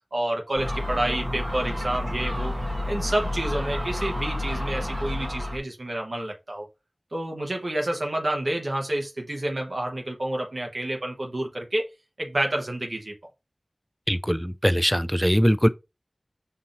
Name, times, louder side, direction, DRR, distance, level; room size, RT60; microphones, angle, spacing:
voice 1, 0.1-2.6 2.9-6.7 7.1-11.9 12.2-13.1, right 1 dB, 85° right, 1.0 m, -29 dB
Gull seagull, 0.5-5.6, left 1 dB, 55° right, 1.0 m, -30 dB
voice 2, 14.1-15.7, equal, ahead, 0.3 m, -21 dB
5.5 x 2.8 x 2.5 m
wide cardioid pair, 45°, 0 cm